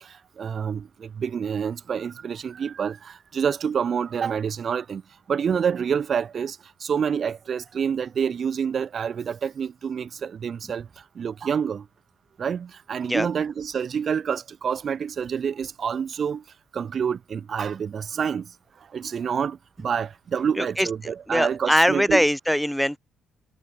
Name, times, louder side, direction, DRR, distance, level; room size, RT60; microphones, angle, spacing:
voice 1, 0.0-5.0 5.3-10.9 11.1-11.9 12.4-16.4 16.7-18.5 18.9-22.2, right 7 dB, 50° right, 1.1 m, -27 dB
voice 2, 20.6-20.9 21.3-23.0, equal, ahead, 0.6 m, -22 dB
cardioid pair, 90°, 0 cm